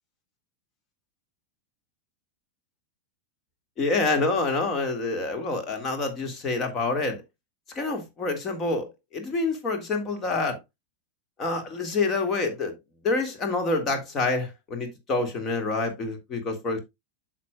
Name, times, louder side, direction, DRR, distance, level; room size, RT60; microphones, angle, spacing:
voice 1, 3.8-7.2 7.8-10.6 11.4-12.7 13.0-16.8, left 3 dB, 25° left, 2.0 m, -27 dB
9.4 x 6.1 x 2.3 m
figure-of-eight pair, 90°, 0 cm